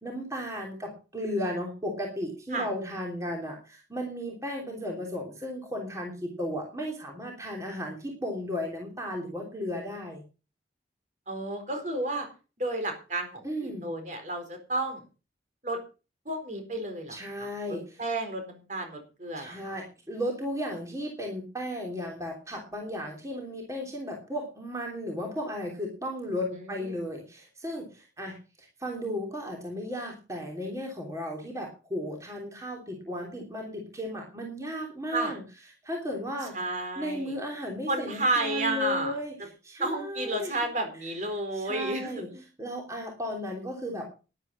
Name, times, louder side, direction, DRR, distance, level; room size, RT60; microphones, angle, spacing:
voice 1, 0.0-10.2 13.4-13.9 17.1-17.8 19.4-28.3 28.8-35.4 35.8-36.5 37.0-39.3 39.6-40.5 41.5-42.3 42.6-44.1, equal, 20° right, 0 dB, 3.1 m, -35 dB
voice 2, 11.3-12.3 12.6-15.0 15.6-15.8 16.3-17.5 18.0-19.8 26.5-26.9 35.1-35.3 36.5-37.3 37.9-39.2 39.8-42.4, right 2 dB, 45° right, 5 dB, 4.2 m, -32 dB
12.5 x 11.0 x 5.4 m, 0.33 s
head